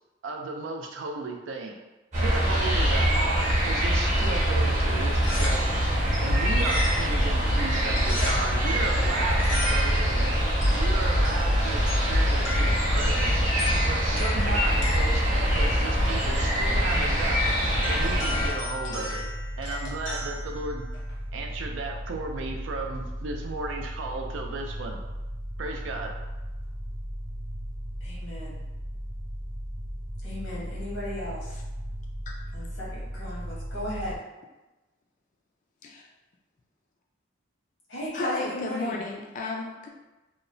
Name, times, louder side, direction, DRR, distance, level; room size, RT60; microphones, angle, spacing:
voice 1, 0.2-1.8 2.2-5.8 6.2-13.4 13.9-17.5 17.9-19.3 19.6-20.9 21.3-25.0 25.6-26.1, right 3 dB, 85° right, 2 dB, 0.4 m, -35 dB
sound 1, 2.1-18.5, equal, 40° right, 0.8 m, -24 dB
sound 2, 5.0-21.3, left 2 dB, 70° left, 0.7 m, -38 dB
sound 3, 14.2-34.2, equal, 15° right, 0.5 m, -36 dB
voice 2, 28.0-28.6 30.2-31.6 32.5-34.2 37.9-39.0, left 1 dB, 90° left, -7 dB, 1.1 m, -36 dB
voice 3, 38.1-39.9, left 3 dB, 45° left, 0 dB, 0.3 m, -33 dB
2.8 x 2.0 x 2.6 m, 1.1 s
head